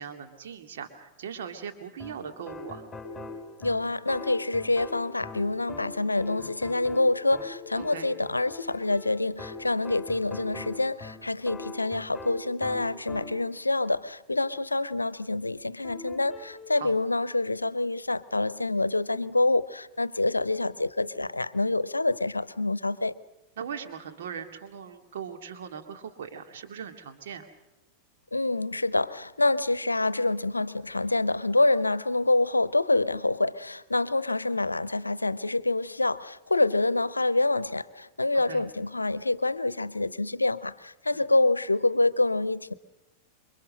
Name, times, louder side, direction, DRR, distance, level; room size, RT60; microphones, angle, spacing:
voice 1, 0.0-2.9 7.8-8.1 9.8-9.9 16.8-16.9 23.6-27.5 38.5-38.6 41.1-41.2, right 7 dB, 60° right, 2.2 m, -39 dB
sound 1, 2.0-13.6 15.8-16.7, left 3 dB, 10° left, 5.3 m, -42 dB
voice 2, 3.6-23.1 28.3-42.7, left 2 dB, 80° left, 0.8 m, -26 dB
28.0 x 24.5 x 6.5 m
figure-of-eight pair, 90°, 0 cm